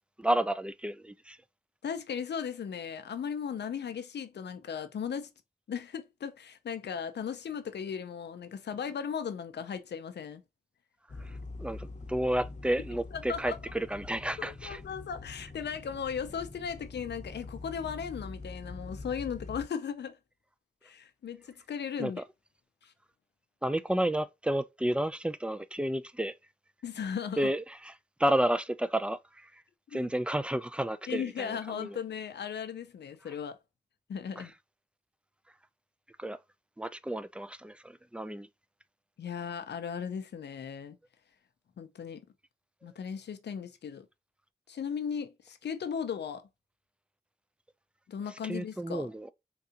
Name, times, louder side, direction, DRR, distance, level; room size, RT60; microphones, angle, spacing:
voice 1, 0.2-1.4 11.2-14.8 22.0-22.2 23.6-26.3 27.4-27.9 28.2-29.6 29.9-32.0 34.4-34.5 36.2-36.4 36.8-38.5 48.4-49.3, right 1 dB, 5° right, 0.3 m, -31 dB
voice 2, 1.8-5.3 5.7-10.4 13.1-13.6 14.4-20.2 20.8-22.2 22.8-22.9 26.8-27.5 29.9-30.1 31.1-33.6 34.1-34.5 39.2-41.0 41.8-42.2 42.8-44.1 44.7-46.4 48.1-49.1, left 7 dB, 85° left, 0.5 m, -37 dB
sound 1, 11.1-19.7, left 3 dB, 45° left, 0.7 m, -44 dB
3.6 x 2.3 x 2.8 m
cardioid pair, 45°, 17 cm